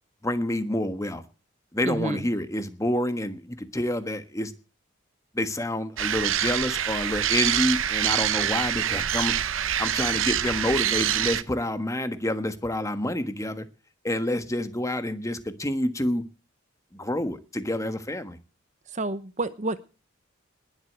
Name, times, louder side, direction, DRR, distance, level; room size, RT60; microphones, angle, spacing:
voice 1, 0.2-1.2 1.7-4.5 5.3-9.3 9.8-13.7 14.0-16.2 16.9-18.4, left 1 dB, 15° left, 10 dB, 1.4 m, -28 dB
voice 2, 1.8-2.2 18.9-19.8, right 2 dB, 35° right, 13 dB, 0.9 m, -29 dB
sound 1, 6.0-11.4, right 10 dB, 75° right, 0.8 m, -25 dB
20.5 x 8.1 x 8.1 m, 0.37 s
head